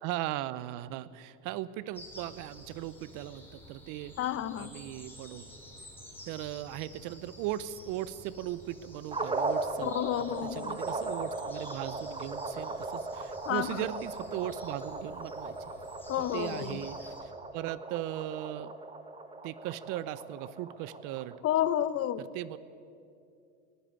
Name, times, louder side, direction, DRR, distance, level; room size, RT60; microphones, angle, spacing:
voice 1, 0.0-4.1 4.5-5.5 6.3-15.6 16.3-18.7 19.4-21.4 22.2-22.6, right 13 dB, 45° right, 17 dB, 0.8 m, -38 dB
sound 1, 1.9-17.2, left 1 dB, 5° left, 4.1 m, -51 dB
voice 2, 4.2-4.7 9.8-10.8 13.5-13.7 16.1-16.8 21.4-22.2, left 11 dB, 30° left, 15 dB, 0.8 m, -30 dB
sound 2, 9.1-21.4, right 3 dB, 10° right, 1.5 m, -38 dB
19.5 x 15.0 x 9.0 m, 2.5 s
hypercardioid pair, 110°, 43 cm